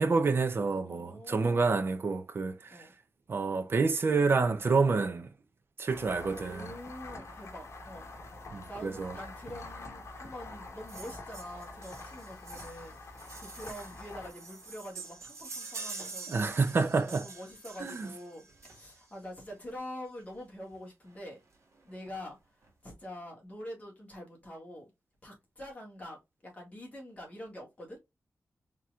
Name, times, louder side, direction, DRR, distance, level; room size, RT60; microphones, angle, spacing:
voice 1, 0.0-2.9 3.3-5.3 5.8-6.7 8.5-9.1 16.3-17.3 17.8-18.1, right 4 dB, 50° right, 0.6 m, -28 dB
voice 2, 0.9-1.9 2.7-2.9 6.4-8.1 8.7-21.4 21.8-24.9 25.2-28.0, left 1 dB, 30° left, 2.0 m, -46 dB
sound 1, 5.9-15.2, left 2 dB, 65° left, 1.3 m, -46 dB
sound 2, 10.9-19.2 20.3-20.4 20.7-20.8 21.0-21.2 21.5-22.1 22.6-22.7, right 4 dB, 75° right, 1.7 m, -46 dB
4.4 x 3.7 x 2.4 m
wide cardioid pair, 165°, 5 cm